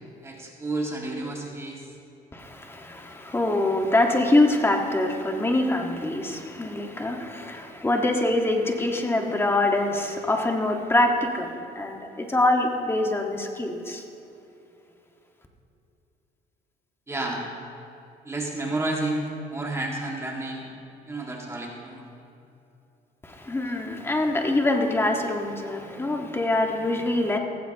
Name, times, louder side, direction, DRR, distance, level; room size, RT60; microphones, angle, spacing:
voice 1, 0.2-1.9 17.1-17.5 18.2-20.7 21.1-22.1, right 2 dB, 15° right, -1 dB, 2.1 m, -31 dB
voice 2, 2.3-14.0 23.2-27.4, left 2 dB, 15° left, 2 dB, 1.6 m, -24 dB
17.5 x 15.5 x 3.0 m, 2.8 s
cardioid pair, 110°, 17 cm